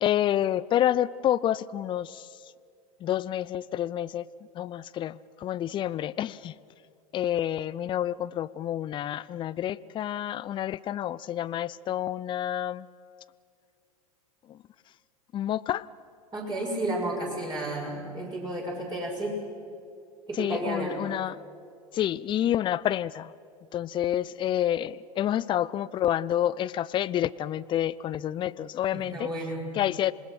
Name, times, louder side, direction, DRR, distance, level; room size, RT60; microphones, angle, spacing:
voice 1, 0.0-2.3 3.0-4.3 4.5-6.5 7.1-12.9 14.5-14.6 15.3-15.9 20.4-21.4 21.9-23.3 23.7-29.3 29.7-30.1, left 11 dB, 25° left, 19 dB, 0.5 m, -28 dB
voice 2, 16.3-19.4 20.3-20.9 28.9-29.6, right 1 dB, 20° right, -2 dB, 6.2 m, -32 dB
27.0 x 20.5 x 6.0 m, 2.3 s
figure-of-eight pair, 85°, 19 cm